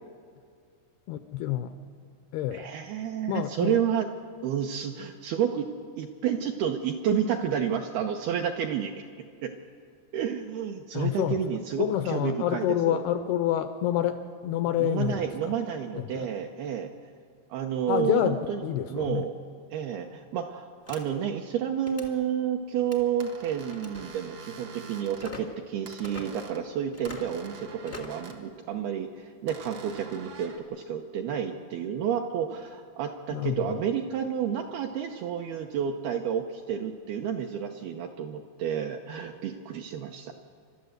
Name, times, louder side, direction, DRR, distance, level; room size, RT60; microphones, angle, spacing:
voice 1, 1.1-1.7 2.3-2.7 3.3-3.8 10.9-15.5 15.9-16.3 17.9-19.3 33.3-33.8, left 11 dB, 85° left, 9 dB, 2.3 m, -28 dB
voice 2, 2.5-4.1 4.4-5.7 6.0-8.9 9.4-9.5 10.1-13.0 14.8-16.9 17.5-18.6 18.9-19.3 19.7-40.3, right 8 dB, 75° right, 3 dB, 2.4 m, -30 dB
sound 1, 20.9-21.0 21.8-22.1 22.8-23.0 23.7-24.0 25.2-25.4 26.0-26.2 26.9-27.3 27.9-28.2, left 2 dB, 45° left, 0.8 m, -41 dB
sound 2, 23.2-25.3 25.9-26.7 27.1-28.4 29.5-30.6, right 4 dB, 60° right, 1.6 m, -46 dB
29.0 x 12.5 x 7.9 m, 2.3 s
omnidirectional pair, 5.3 m